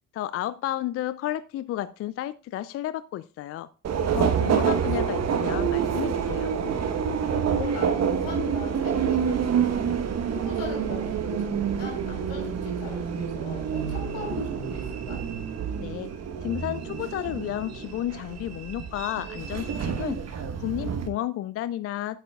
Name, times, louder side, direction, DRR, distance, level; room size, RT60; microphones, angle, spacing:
voice 1, 0.1-3.7 4.1-6.5 15.8-16.1 16.4-22.2, left 13 dB, 40° left, 0.4 m, -32 dB
Subway metro underground, 3.8-21.1, right 7 dB, 40° right, 1.2 m, -28 dB
voice 2, 7.5-10.0 10.3-15.2, left 3 dB, 75° left, 4.4 m, -39 dB
11.5 x 8.0 x 2.4 m
hypercardioid pair, 55°, 39 cm